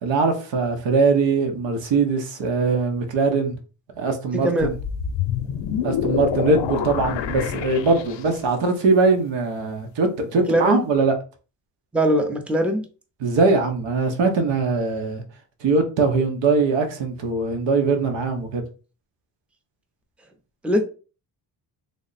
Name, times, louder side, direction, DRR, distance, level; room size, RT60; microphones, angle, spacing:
voice 1, 0.0-3.5 4.0-4.7 5.8-11.1 13.2-15.2 15.6-18.6, right 3 dB, 90° right, 1.0 m, -21 dB
voice 2, 4.3-4.7 10.5-10.8 11.9-12.8 20.6-20.8, equal, 5° right, 0.5 m, -21 dB
sound 1, 4.6-8.6, left 9 dB, 80° left, 0.6 m, -27 dB
3.4 x 2.1 x 4.0 m
cardioid pair, 130°, 43 cm